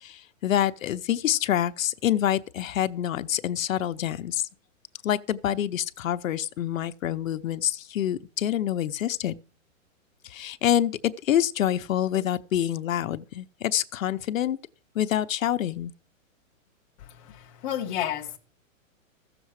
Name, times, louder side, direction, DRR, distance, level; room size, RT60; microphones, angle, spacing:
voice 1, 0.0-4.5 5.0-9.4 10.2-14.6 14.9-15.9, left 11 dB, 75° left, 0.9 m, -26 dB
voice 2, 17.0-18.4, left 10 dB, 10° left, 0.6 m, -32 dB
15.0 x 7.0 x 4.8 m
hypercardioid pair, 165°, 41 cm